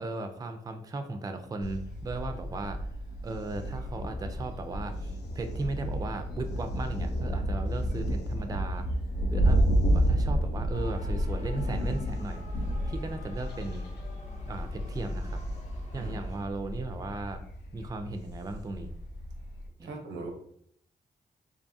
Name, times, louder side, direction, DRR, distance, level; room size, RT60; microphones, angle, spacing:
voice 1, 0.0-2.8 3.2-8.9 9.3-9.6 9.9-12.4 12.9-13.9 14.5-15.4 15.9-17.4 17.7-18.9 19.8-19.9, right 2 dB, 20° right, 7 dB, 0.3 m, -36 dB
Thunder, 1.6-19.7, equal, 70° left, 0.4 m, -31 dB
Motor vehicle (road) / Siren, 10.7-16.4, equal, 45° left, 0.7 m, -42 dB
voice 2, 19.8-20.3, right 3 dB, 85° right, 2 dB, 0.5 m, -40 dB
2.6 x 2.3 x 2.6 m, 0.65 s
cardioid pair, 55°, 18 cm